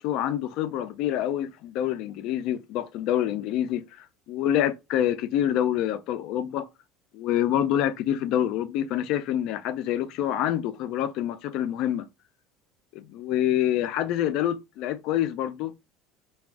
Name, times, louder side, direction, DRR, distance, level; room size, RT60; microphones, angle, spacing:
voice 1, 0.0-6.7 7.1-12.1 12.9-15.7, left 11 dB, 65° left, 0.4 m, -27 dB
2.4 x 2.3 x 3.5 m
supercardioid pair, 95°, 0 cm